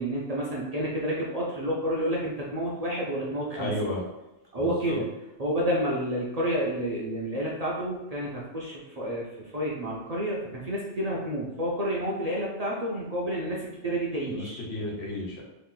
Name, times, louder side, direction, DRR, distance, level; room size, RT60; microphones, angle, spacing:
voice 1, 0.0-3.7 4.5-5.1 5.4-14.6, right 1 dB, 50° right, -4 dB, 0.5 m, -30 dB
voice 2, 3.6-4.0 4.5-5.0 14.3-15.4, left 1 dB, 90° left, -2 dB, 1.2 m, -33 dB
2.9 x 2.4 x 3.7 m, 1.0 s
omnidirectional pair, 1.2 m